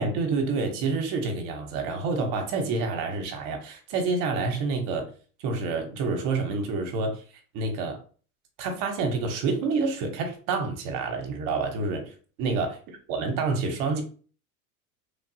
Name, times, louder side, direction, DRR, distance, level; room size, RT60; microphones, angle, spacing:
voice 1, 0.0-5.1 5.4-7.2 7.5-8.0 8.6-12.0 12.4-12.8 13.1-14.0, right 4 dB, 55° right, 4 dB, 0.8 m, -28 dB
3.2 x 2.2 x 2.6 m, 0.40 s
supercardioid pair, 130°, 41 cm